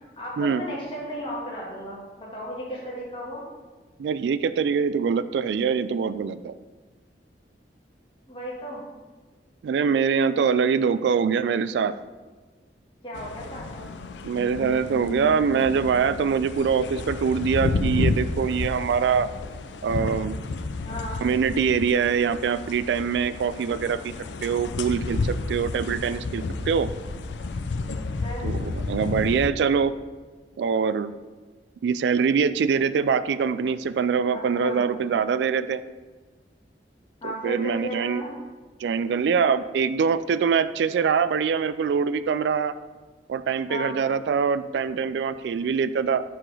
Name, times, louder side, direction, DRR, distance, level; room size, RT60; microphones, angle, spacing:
voice 1, 0.2-3.4 8.3-8.8 10.6-10.8 13.0-13.9 20.8-21.2 28.2-28.5 34.3-34.9 37.2-38.3 43.7-44.0, equal, 30° left, -5 dB, 1.6 m, -35 dB
voice 2, 4.0-6.5 9.6-11.9 14.2-19.3 19.8-20.4 21.2-24.1 24.4-26.9 28.4-29.9 30.6-31.1 31.8-35.8 37.2-38.2 38.8-42.7 43.3-46.2, right 6 dB, 75° right, 14 dB, 0.3 m, -24 dB
sound 1, 13.1-29.5, left 3 dB, 85° left, 0.5 m, -31 dB
6.1 x 4.8 x 4.7 m, 1.4 s
head